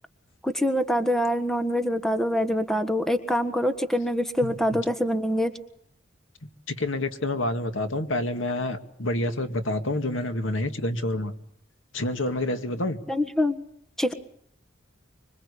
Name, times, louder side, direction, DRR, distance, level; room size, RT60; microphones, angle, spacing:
voice 1, 0.4-5.5 13.1-13.6 14.0-14.1, equal, ahead, 9 dB, 1.5 m, -25 dB
voice 2, 6.7-11.3 11.9-13.0, left 1 dB, 80° left, 8 dB, 2.2 m, -28 dB
25.5 x 24.0 x 8.4 m, 0.71 s
head